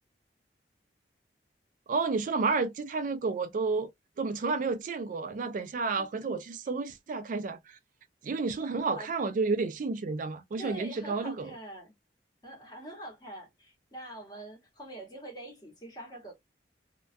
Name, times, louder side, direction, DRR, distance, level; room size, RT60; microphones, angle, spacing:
voice 1, 1.9-3.9 4.2-7.8 8.2-11.5, right 4 dB, 50° right, 0.3 m, -31 dB
voice 2, 10.6-11.9 12.4-16.3, right 1 dB, 25° left, 1.0 m, -44 dB
2.2 x 2.2 x 2.4 m
head